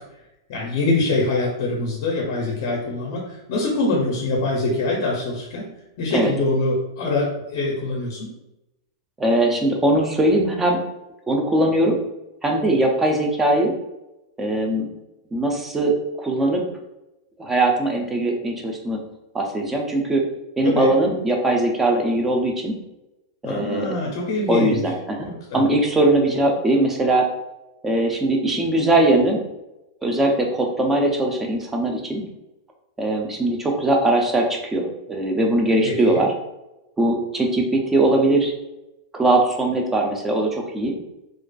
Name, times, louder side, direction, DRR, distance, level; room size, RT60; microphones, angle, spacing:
voice 1, 0.5-5.7 6.0-8.3 20.6-20.9 23.4-24.8 25.2-25.6 35.8-36.2, left 2 dB, 45° left, -2 dB, 0.5 m, -24 dB
voice 2, 9.2-10.8 11.3-12.0 12.4-13.7 14.4-14.9 15.3-16.6 17.4-19.0 19.3-20.2 20.6-22.7 23.4-23.9 24.5-25.3 25.5-27.3 27.8-29.4 30.0-32.2 33.0-36.3 37.0-38.5 39.1-41.0, right 1 dB, 10° right, 1 dB, 0.4 m, -20 dB
2.4 x 2.3 x 2.2 m, 0.94 s
supercardioid pair, 155°, 2 cm